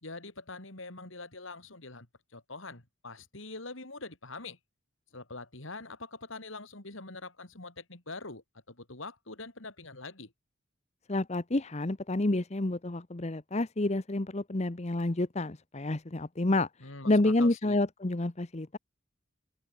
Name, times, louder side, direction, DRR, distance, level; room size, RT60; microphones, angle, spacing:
voice 1, 0.0-2.1 2.3-4.6 5.1-10.3 16.8-17.8, left 3 dB, 70° left, 3.6 m, -44 dB
voice 2, 11.1-16.7 17.0-18.8, left 2 dB, 30° left, 0.9 m, -29 dB
open air
head